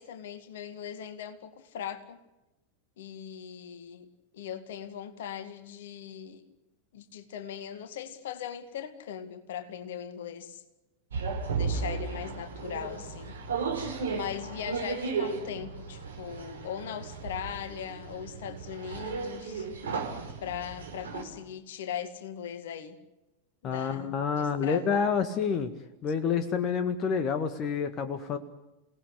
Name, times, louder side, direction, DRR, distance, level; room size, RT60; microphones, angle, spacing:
voice 1, 0.0-2.2 3.0-4.1 4.3-6.5 6.9-10.6 11.5-13.4 14.1-19.7 20.4-23.0 23.6-25.1, left 9 dB, 55° left, 2.1 m, -39 dB
sound 1, 11.1-21.2, right 5 dB, 65° right, 5.7 m, -35 dB
voice 2, 23.6-25.7 26.0-28.4, left 6 dB, 30° left, 1.7 m, -28 dB
29.5 x 18.5 x 8.2 m
figure-of-eight pair, 90°, 0 cm